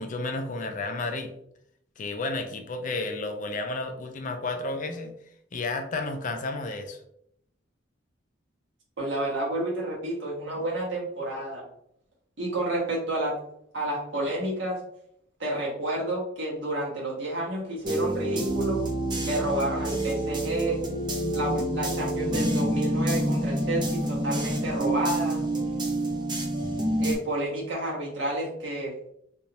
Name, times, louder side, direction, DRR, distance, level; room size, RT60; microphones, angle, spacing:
voice 1, 0.0-1.3 2.0-5.1 5.5-7.0, left 2 dB, 40° left, 6 dB, 0.4 m, -32 dB
voice 2, 9.0-11.6 12.4-13.4 13.7-14.8 15.4-18.8 19.2-20.8 21.3-25.4 27.0-28.9, right 1 dB, 75° right, -4 dB, 1.3 m, -30 dB
sound 1, 17.8-27.2, right 1 dB, 25° right, 0.7 m, -28 dB
3.3 x 2.6 x 2.8 m, 0.71 s
head